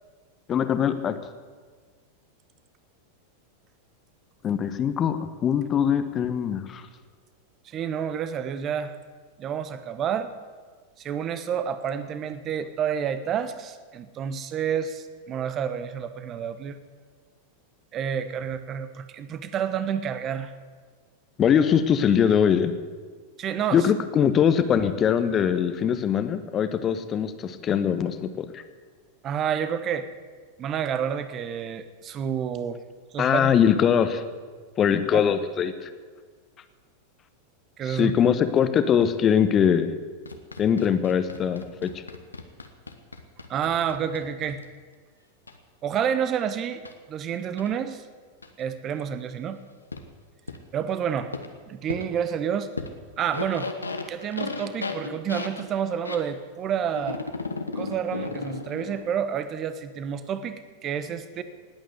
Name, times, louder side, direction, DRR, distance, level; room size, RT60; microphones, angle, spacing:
voice 1, 0.5-1.1 4.4-6.8 21.4-22.7 23.7-28.6 33.2-34.2 34.8-35.9 37.9-39.9 40.6-41.9, left 8 dB, 25° left, 10 dB, 1.1 m, -22 dB
voice 2, 7.6-8.9 9.4-10.3 11.0-16.8 17.9-20.5 23.4-23.9 29.2-30.1 30.6-32.8 33.1-33.5 37.8-38.1 43.5-44.6 45.8-46.8 47.1-48.0 48.6-49.6 50.7-51.3 51.7-52.7 53.2-53.7 54.1-57.2 57.7-61.4, right 8 dB, 30° right, 12 dB, 1.1 m, -29 dB
sound 1, 40.3-44.6 45.5-45.6 46.8-46.9 47.6-47.7 48.4-48.5 49.9-50.0 50.5-50.6 51.3-51.5 51.9-52.0 52.8-52.9 53.2-56.2 56.9-59.0, left 3 dB, 80° left, 1.2 m, -34 dB
19.0 x 8.8 x 8.1 m, 1.5 s
figure-of-eight pair, 90°, 0 cm